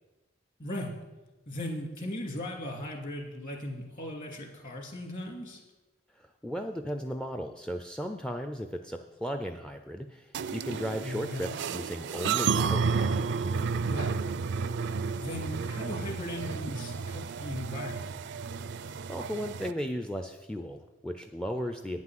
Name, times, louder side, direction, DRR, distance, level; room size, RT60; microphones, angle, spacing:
voice 1, 0.6-0.9 1.5-5.6 11.0-11.5 13.8-14.2 15.2-18.1, left 1 dB, 45° left, 0 dB, 2.5 m, -38 dB
voice 2, 6.1-13.1 18.7-22.0, equal, 5° left, 6 dB, 0.4 m, -36 dB
sound 1, 10.3-19.7, right 5 dB, 60° right, 0.4 m, -32 dB
9.6 x 6.1 x 7.5 m, 1.1 s
head